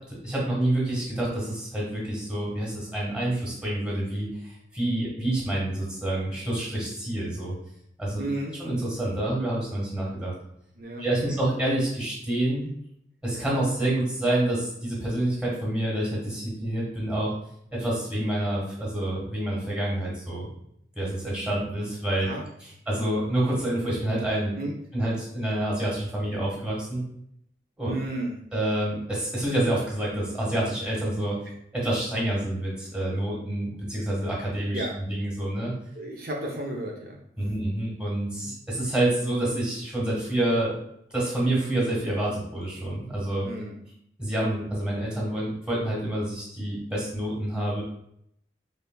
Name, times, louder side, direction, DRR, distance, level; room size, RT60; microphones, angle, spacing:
voice 1, 0.1-7.5 8.0-8.2 8.6-10.3 11.0-12.7 13.2-17.3 17.7-20.5 20.9-22.3 22.6-24.5 24.9-27.0 27.8-27.9 28.5-31.4 31.7-35.7 37.4-40.7 41.1-43.4 44.2-47.8, right 1 dB, 5° right, -5 dB, 1.4 m, -28 dB
voice 2, 8.2-8.5 10.8-11.0 22.2-22.4 24.6-24.8 27.8-28.4 34.7-35.0 35.9-37.2 38.4-38.5 43.4-43.8, right 1 dB, 55° right, -1 dB, 0.6 m, -32 dB
5.4 x 3.3 x 2.2 m, 0.72 s
head